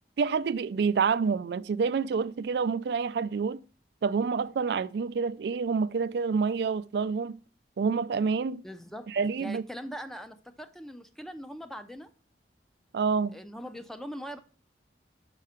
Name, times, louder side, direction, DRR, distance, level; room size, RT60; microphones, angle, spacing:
voice 1, 0.2-3.6 4.0-7.4 7.8-8.6 9.1-9.6 12.9-13.4, right 5 dB, 65° right, 0.3 m, -28 dB
voice 2, 8.6-12.1 13.3-14.4, equal, ahead, 0.5 m, -41 dB
5.8 x 5.5 x 5.0 m
head